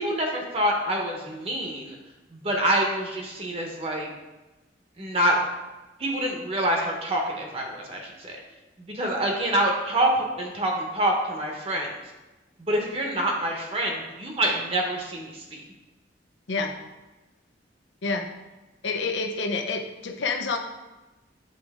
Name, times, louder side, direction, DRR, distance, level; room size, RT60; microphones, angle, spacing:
voice 1, 0.0-2.0 2.3-4.1 5.0-5.4 6.0-8.4 8.8-11.9 12.7-15.6, right 1 dB, 30° right, 1 dB, 0.9 m, -26 dB
voice 2, 18.8-20.6, left 4 dB, 80° left, 4 dB, 0.7 m, -28 dB
7.7 x 3.8 x 3.5 m, 1.1 s
head